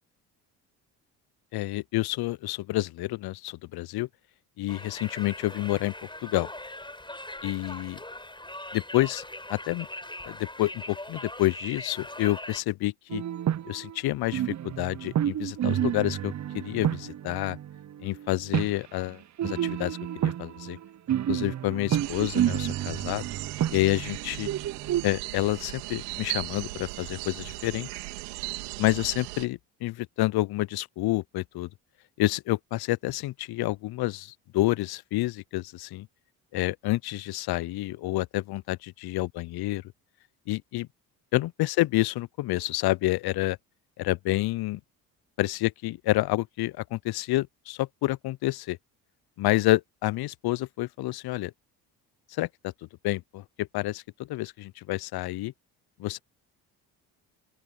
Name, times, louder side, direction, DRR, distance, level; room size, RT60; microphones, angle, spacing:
voice 1, 1.5-4.1 4.6-5.9 6.2-6.5 7.4-8.0 8.7-9.2 9.5-9.9 10.3-13.2 13.6-17.6 18.0-20.0 20.2-20.8 21.3-23.3 23.7-24.5 25.0-27.9 28.8-31.7 32.2-36.1 36.5-39.8 40.5-40.9 41.3-43.6 44.0-44.8 45.4-48.8 49.4-51.5 52.3-52.7 53.0-55.5 56.0-56.2, left 18 dB, 55° left, 0.7 m, -28 dB
Conversation, 4.7-12.6, left 1 dB, 10° left, 6.8 m, -41 dB
sound 1, 13.1-14.0 14.2-18.7 19.4-25.0, right 11 dB, 35° right, 0.7 m, -30 dB
sound 2, 21.9-29.5, right 24 dB, 85° right, 3.4 m, -37 dB
open air
hypercardioid pair, 55°, 47 cm